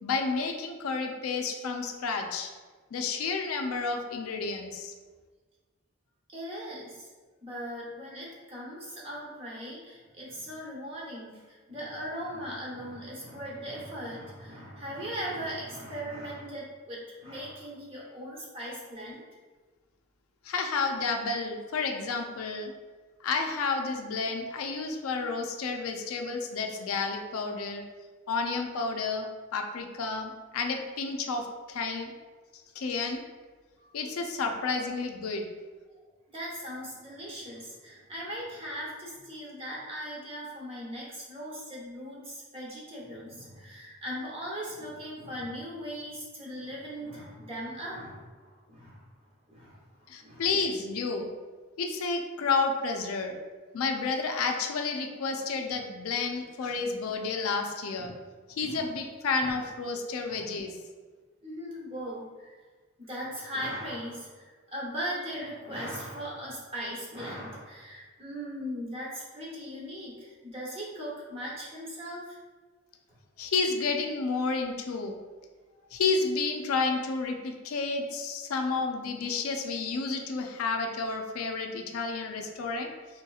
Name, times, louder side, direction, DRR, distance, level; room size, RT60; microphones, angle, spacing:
voice 1, 0.0-2.5 2.9-4.9 20.4-22.7 23.2-27.8 28.3-29.3 29.5-32.1 32.8-33.2 33.9-35.5 50.1-51.3 51.8-53.4 53.7-58.1 58.6-60.7 73.4-75.2 75.9-82.9, left 4 dB, 90° left, 4 dB, 0.4 m, -31 dB
voice 2, 6.3-7.1 7.4-19.2 36.3-49.0 49.5-50.5 58.0-58.1 58.4-58.9 59.4-59.5 60.2-60.4 61.4-62.5 63.0-72.4, equal, 25° right, -5 dB, 0.8 m, -39 dB
4.3 x 2.8 x 2.3 m, 1.4 s
head